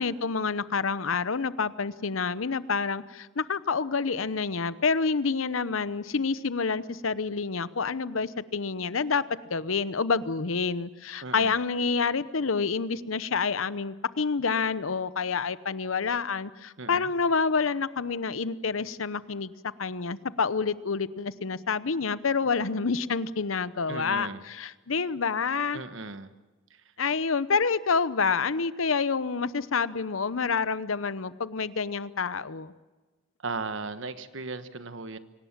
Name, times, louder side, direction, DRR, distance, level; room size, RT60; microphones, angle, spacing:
voice 1, 0.0-9.2 9.5-19.5 19.8-25.8 27.0-32.7, left 5 dB, 85° left, 16 dB, 0.9 m, -28 dB
voice 2, 11.2-11.5 16.8-17.1 23.9-24.4 25.7-26.3 33.4-35.2, right 3 dB, 70° right, 11 dB, 1.3 m, -36 dB
25.0 x 19.0 x 7.5 m, 1.2 s
head